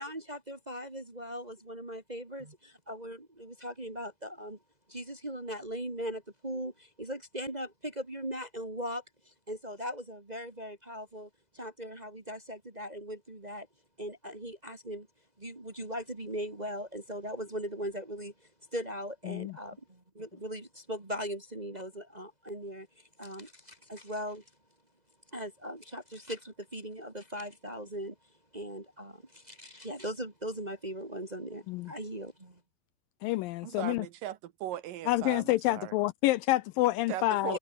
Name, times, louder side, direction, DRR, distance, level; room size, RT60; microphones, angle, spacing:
voice 1, 0.0-4.6 4.9-9.0 9.5-13.7 14.0-15.1 15.4-18.3 18.7-22.9 23.2-24.4 25.3-28.1 28.5-32.6, equal, 20° right, 1.0 m, -39 dB
voice 2, 19.3-19.6 31.7-31.9 33.2-34.1 35.1-37.6, left 17 dB, 80° left, 2.1 m, -28 dB
voice 3, 33.6-35.9 37.1-37.6, right 12 dB, 70° right, 2.6 m, -38 dB
omnidirectional pair, 4.4 m